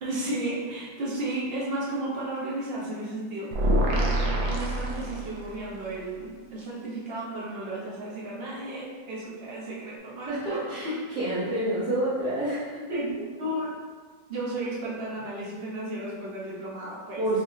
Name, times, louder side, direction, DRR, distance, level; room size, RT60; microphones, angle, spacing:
voice 1, 0.0-3.5 3.9-4.2 4.5-10.7 12.9-13.1 13.4-13.7 14.3-17.2, right 1 dB, 45° right, -6 dB, 0.9 m, -33 dB
sound 1, 3.5-5.6, right 1 dB, 85° right, 1.3 m, -25 dB
voice 2, 10.3-13.0 17.2-17.4, right 1 dB, 65° right, -10 dB, 1.4 m, -28 dB
3.6 x 3.3 x 2.7 m, 1.5 s
omnidirectional pair, 2.0 m